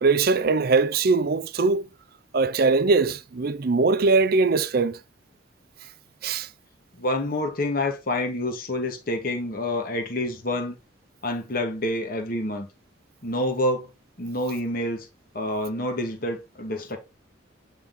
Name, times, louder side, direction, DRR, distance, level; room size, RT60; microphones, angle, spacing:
voice 1, 0.0-1.8 2.3-5.0 6.2-6.5, right 4 dB, 50° right, 0.5 m, -21 dB
voice 2, 7.0-10.8 11.2-12.7 13.2-13.9 14.2-15.1 15.3-17.0, left 1 dB, 50° left, 1.4 m, -27 dB
8.7 x 3.7 x 3.7 m
head